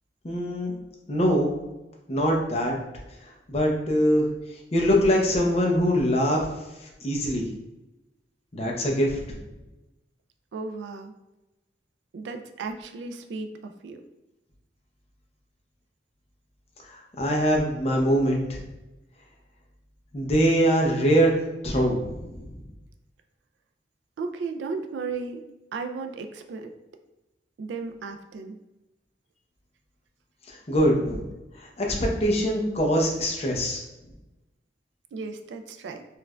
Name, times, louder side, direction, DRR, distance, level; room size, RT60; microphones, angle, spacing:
voice 1, 0.2-0.7 1.1-1.6 2.1-2.8 3.5-4.3 4.7-6.4 7.0-7.4 8.5-9.2 16.9-18.6 20.1-22.5 30.5-31.2 31.6-33.8, equal, 35° left, -1 dB, 0.6 m, -23 dB
voice 2, 10.5-11.1 12.1-14.0 24.2-25.4 25.7-26.7 27.6-28.6 35.1-36.0, right 4 dB, 85° right, 6 dB, 0.3 m, -35 dB
4.4 x 2.4 x 2.2 m, 0.99 s
head